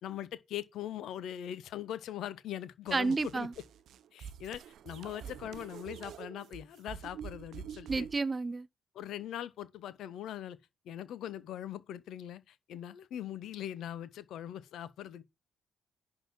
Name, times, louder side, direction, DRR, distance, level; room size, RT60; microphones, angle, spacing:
voice 1, 0.0-3.5 4.1-8.1 8.9-10.6 10.8-15.2, left 11 dB, 60° left, 0.8 m, -41 dB
voice 2, 2.9-3.5 7.9-8.7, right 3 dB, 30° right, 0.6 m, -31 dB
sound 1, 2.9-8.2, right 8 dB, 60° right, 0.8 m, -46 dB
11.0 x 3.8 x 6.1 m
figure-of-eight pair, 45°, 0 cm